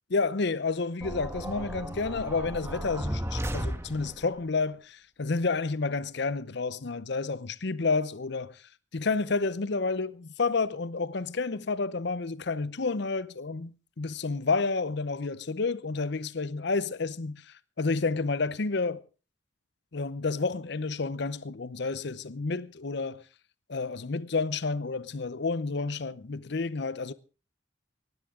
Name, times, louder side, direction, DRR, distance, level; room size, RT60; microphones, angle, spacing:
voice 1, 0.1-8.6 8.9-19.0 19.9-23.2 23.7-27.1, left 4 dB, 60° left, 0.7 m, -30 dB
sound 1, 1.0-4.4, equal, 15° right, 1.4 m, -35 dB
19.0 x 15.0 x 3.7 m
head